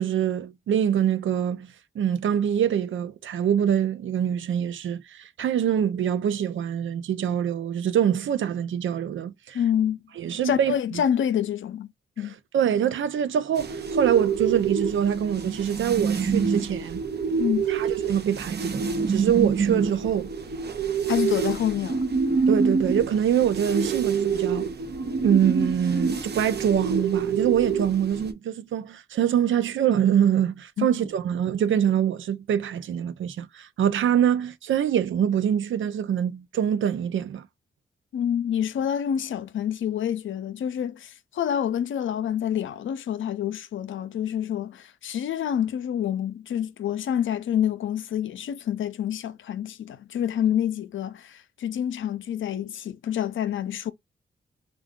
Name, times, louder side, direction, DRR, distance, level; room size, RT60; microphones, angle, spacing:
voice 1, 0.0-9.6 10.2-11.0 12.5-17.0 17.7-20.3 22.5-24.7 25.2-37.5, right 9 dB, 80° right, 0.5 m, -24 dB
voice 2, 9.5-10.0 10.4-11.9 12.2-12.3 17.4-17.7 21.1-22.0 30.8-30.9 38.1-53.9, left 9 dB, 80° left, 0.5 m, -27 dB
sound 1, 13.6-28.3, right 5 dB, 60° right, 0.8 m, -27 dB
3.7 x 2.3 x 3.6 m
cardioid pair, 45°, 20 cm